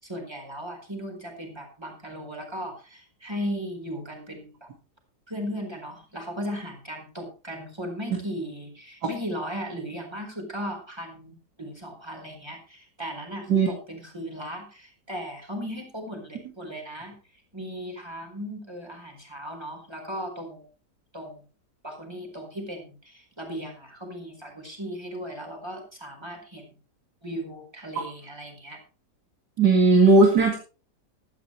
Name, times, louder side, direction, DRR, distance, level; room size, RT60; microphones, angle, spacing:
voice 1, 0.0-4.7 5.3-17.1 17.5-20.7 21.1-21.4 21.8-26.7 27.2-28.8, equal, 15° right, 3 dB, 4.5 m, -37 dB
voice 2, 29.6-30.6, right 3 dB, 75° right, 1 dB, 2.6 m, -17 dB
16.0 x 13.0 x 3.2 m, 0.36 s
omnidirectional pair, 1.8 m